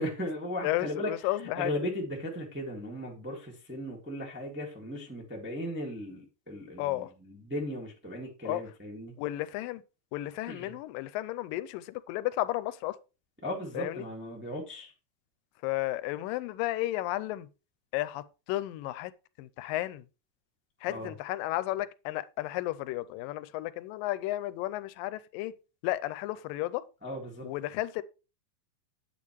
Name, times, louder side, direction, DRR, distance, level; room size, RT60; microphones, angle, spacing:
voice 1, 0.0-1.3 1.5-9.2 10.5-10.8 13.4-14.9 20.9-21.1 27.0-27.5, left 1 dB, 10° right, 0.6 m, -37 dB
voice 2, 0.6-1.7 6.8-7.1 8.5-8.6 9.2-9.8 10.1-13.0 13.8-14.0 15.6-17.5 17.9-19.1 19.4-20.0 20.8-25.5 25.8-26.8 27.4-28.0, left 16 dB, 85° left, 2.2 m, -33 dB
8.9 x 8.4 x 3.1 m
omnidirectional pair, 4.0 m